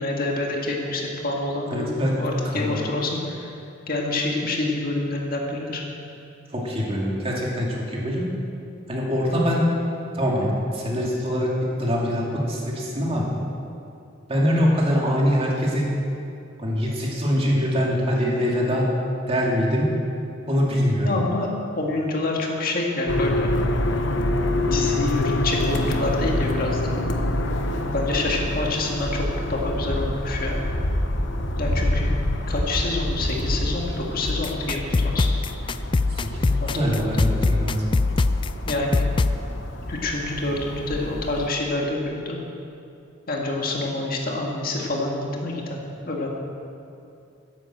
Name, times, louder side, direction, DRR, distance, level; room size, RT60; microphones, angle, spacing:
voice 1, 0.0-1.9 2.2-3.5 3.9-5.8 21.0-21.5 21.8-23.5 23.9-24.2 24.7-26.9 27.9-30.6 31.6-32.1 32.5-35.3 36.6-37.0 38.7-39.1 39.9-42.4 43.3-45.8 46.1-46.3, left 2 dB, 50° left, -1 dB, 1.9 m, -27 dB
voice 2, 1.7-2.1 2.5-2.7 6.5-8.3 8.9-9.6 10.1-11.5 11.8-13.2 14.3-15.9 16.6-18.9 19.3-19.9 20.5-21.2 36.2-37.8, equal, 30° right, -3 dB, 2.4 m, -23 dB
sound 1, 23.1-41.5, left 1 dB, 65° left, 1.0 m, -27 dB
sound 2, 34.3-39.4, left 3 dB, 25° left, 0.3 m, -23 dB
12.5 x 10.5 x 7.6 m, 2.7 s
head